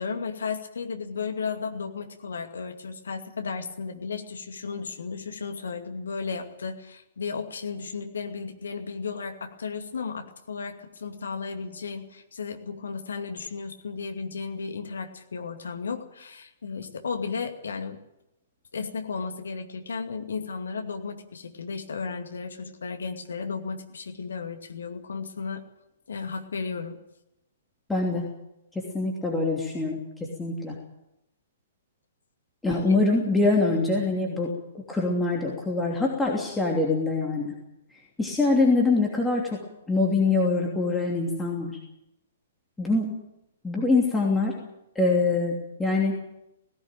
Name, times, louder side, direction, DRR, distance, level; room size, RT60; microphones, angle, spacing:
voice 1, 0.0-18.0 18.7-25.6 26.1-27.0, left 5 dB, 65° left, 6 dB, 2.4 m, -34 dB
voice 2, 27.9-28.3 28.7-30.8 32.6-34.5 34.9-37.5 37.9-39.6 39.9-41.8 42.8-43.1 43.6-44.5 44.9-46.2, left 3 dB, 5° left, -2 dB, 3.0 m, -24 dB
18.0 x 16.5 x 9.1 m, 0.88 s
figure-of-eight pair, 115°, 0 cm